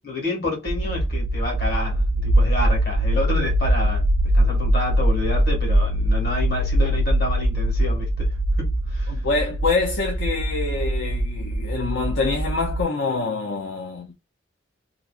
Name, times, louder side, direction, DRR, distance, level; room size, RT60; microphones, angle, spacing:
voice 1, 0.0-4.1 4.3-8.3 8.6-9.2, left 2 dB, 60° left, 1.7 m, -29 dB
sound 1, 0.7-12.8, right 1 dB, 35° right, 0.4 m, -22 dB
voice 2, 9.1-14.1, left 3 dB, 80° left, 0.6 m, -26 dB
3.1 x 2.4 x 2.3 m
head